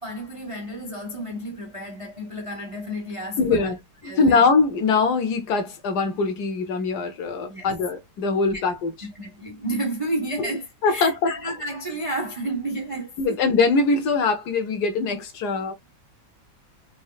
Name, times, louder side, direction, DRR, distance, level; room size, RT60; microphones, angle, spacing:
voice 1, 0.0-3.7 4.0-4.4 7.5-7.7 8.5-8.7 9.0-13.4, right 1 dB, 40° right, 0.4 m, -31 dB
voice 2, 3.4-3.8 4.0-8.9 10.8-11.4 13.2-15.7, left 4 dB, 65° left, 1.4 m, -22 dB
4.2 x 3.0 x 2.3 m
omnidirectional pair, 1.9 m